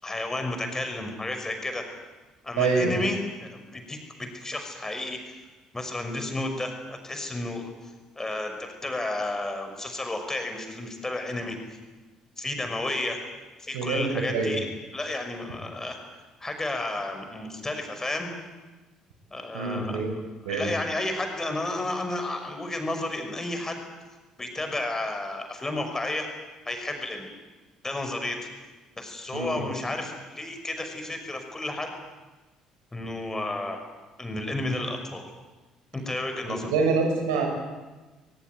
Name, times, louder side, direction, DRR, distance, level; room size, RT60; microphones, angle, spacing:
voice 1, 0.0-1.8 2.4-5.4 5.7-7.7 8.2-11.6 12.4-13.2 13.6-14.7 14.9-16.0 16.4-18.3 19.3-20.0 20.5-23.8 24.4-26.3 26.7-27.3 27.8-28.4 29.0-31.9 32.9-33.8 34.2-35.2 35.9-36.7, left 2 dB, 15° left, 5 dB, 6.0 m, -32 dB
voice 2, 2.6-2.9 13.7-14.5 19.5-20.1 20.4-20.7 29.3-29.6 36.6-37.5, right 4 dB, 70° right, 2 dB, 5.5 m, -25 dB
22.5 x 22.0 x 9.4 m, 1.2 s
figure-of-eight pair, 50°, 3 cm